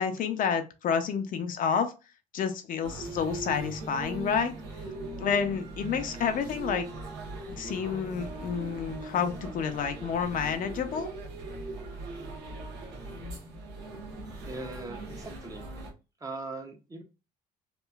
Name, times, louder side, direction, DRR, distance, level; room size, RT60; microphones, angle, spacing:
voice 1, 0.0-1.9 2.3-4.5 5.2-6.9 7.6-11.1, left 7 dB, 55° left, 7 dB, 0.5 m, -29 dB
sound 1, 2.8-15.9, right 2 dB, 85° right, 0.9 m, -40 dB
voice 2, 14.4-15.7 16.2-17.0, right 2 dB, 20° right, 4 dB, 0.6 m, -40 dB
2.9 x 2.4 x 2.3 m, 0.29 s
cardioid pair, 110°, 17 cm